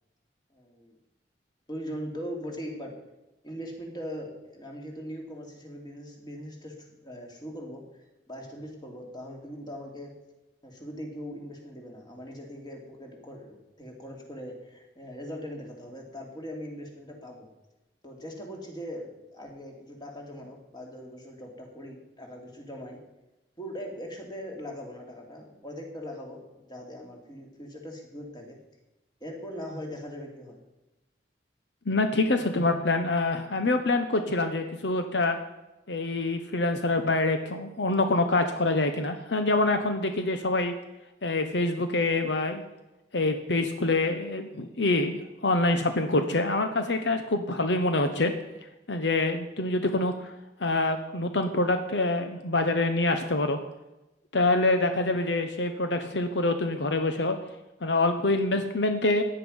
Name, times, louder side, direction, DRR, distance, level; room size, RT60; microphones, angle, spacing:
voice 1, 0.5-1.0 1.7-2.9 3.4-7.9 8.3-10.1 10.6-17.5 18.0-23.0 23.6-28.6 29.2-30.6, equal, 25° left, 1 dB, 2.8 m, -40 dB
voice 2, 31.9-35.4 35.9-40.7 41.2-42.6 43.1-48.3 48.9-50.3 50.6-53.6 54.3-57.4 57.8-59.2, left 2 dB, 75° left, 7 dB, 1.1 m, -26 dB
16.0 x 10.0 x 5.5 m, 0.99 s
head